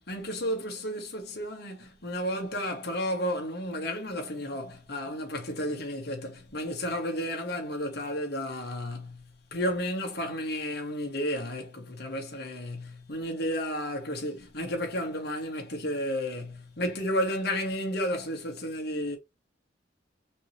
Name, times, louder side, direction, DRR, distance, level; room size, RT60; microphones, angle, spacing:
voice 1, 0.0-9.2 9.5-19.2, equal, 60° left, 1.9 m, -32 dB
5.3 x 3.2 x 3.0 m
head